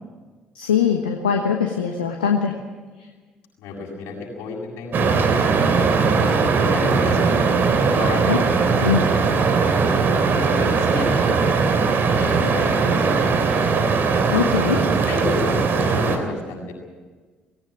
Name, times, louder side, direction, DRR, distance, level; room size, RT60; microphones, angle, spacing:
voice 1, 0.5-2.5 8.0-8.4 8.8-9.1 14.3-14.9, left 7 dB, 85° left, 3 dB, 1.2 m, -22 dB
voice 2, 3.6-5.3 5.5-7.6 7.9-8.4 10.3-11.5 12.1-13.6 15.1-16.7, left 3 dB, 60° left, -2 dB, 7.5 m, -31 dB
sound 1, 4.9-16.2, right 5 dB, 50° right, 3.1 m, -19 dB
19.5 x 17.5 x 9.7 m, 1.4 s
figure-of-eight pair, 50°, 5 cm